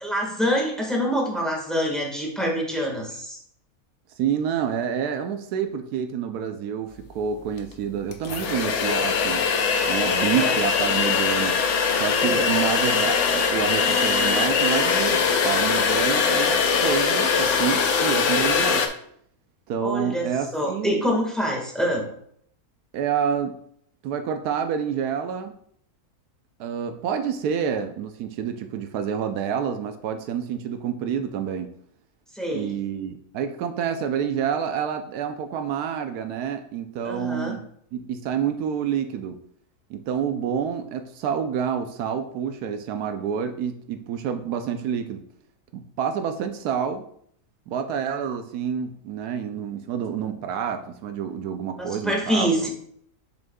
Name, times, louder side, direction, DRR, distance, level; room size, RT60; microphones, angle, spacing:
voice 1, 0.0-3.4 10.2-10.5 12.2-12.5 19.8-20.3 20.5-22.1 32.3-32.7 37.0-37.5 51.8-52.7, equal, ahead, -1 dB, 1.5 m, -26 dB
voice 2, 4.2-9.5 9.9-11.6 12.0-18.8 19.7-20.9 22.9-23.6 24.0-25.5 26.6-31.7 32.5-37.6 37.9-39.4 39.9-45.2 45.7-47.1 47.7-52.5, right 8 dB, 80° right, 7 dB, 1.1 m, -28 dB
sound 1, 7.6-7.7 8.1-18.9, left 5 dB, 60° left, 0.9 m, -22 dB
7.1 x 6.3 x 2.3 m, 0.65 s
omnidirectional pair, 1.6 m